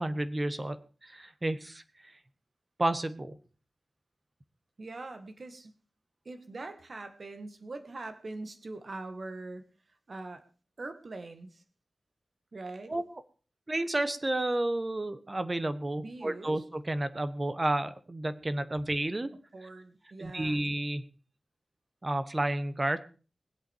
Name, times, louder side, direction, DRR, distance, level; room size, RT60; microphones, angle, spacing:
voice 1, 0.0-1.8 2.8-3.4 12.9-13.0 13.7-19.3 20.2-21.0 22.0-23.0, right 1 dB, 25° right, 12 dB, 1.1 m, -31 dB
voice 2, 4.8-5.8 6.3-10.4 10.8-11.6 12.5-12.9 16.0-16.6 19.5-20.6, right 2 dB, 50° right, 8 dB, 1.8 m, -43 dB
21.0 x 8.1 x 4.6 m, 0.37 s
wide cardioid pair, 120°, 0 cm